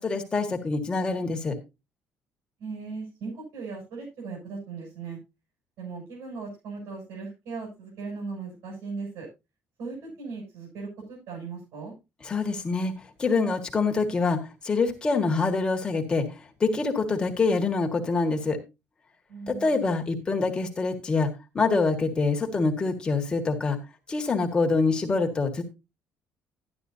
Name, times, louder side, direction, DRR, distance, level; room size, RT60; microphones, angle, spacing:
voice 1, 0.0-1.5 12.2-12.9 13.2-14.4 14.6-16.3 16.6-18.6 19.5-23.8 24.1-25.6, left 4 dB, 20° left, 3 dB, 1.8 m, -25 dB
voice 2, 2.6-5.2 5.8-9.3 9.8-11.9 19.3-19.7, right 4 dB, 80° right, -3 dB, 7.9 m, -38 dB
12.0 x 11.0 x 2.8 m, 0.26 s
cardioid pair, 165°, 5 cm